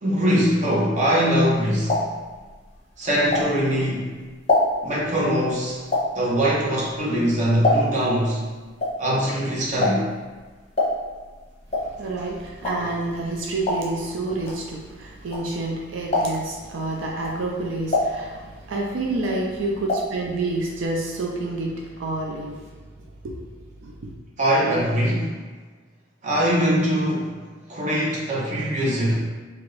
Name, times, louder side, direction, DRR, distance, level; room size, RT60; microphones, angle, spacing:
voice 1, 0.0-2.0 3.0-4.1 4.8-5.8 6.1-8.4 9.0-10.1 12.8-12.9 24.4-25.3 26.2-27.4 27.7-29.1, equal, 40° right, -5 dB, 0.7 m, -22 dB
sound 1, 1.3-3.9 4.2-8.2 8.4-15.7 16.0-16.6 17.1-18.8 19.1-20.2 20.4-20.5 20.8-20.9, left 2 dB, 35° left, 0.7 m, -26 dB
voice 2, 11.8-22.7 23.2-23.4 23.8-24.1, right 2 dB, 85° right, -1 dB, 0.4 m, -29 dB
2.7 x 2.5 x 3.2 m, 1.4 s
head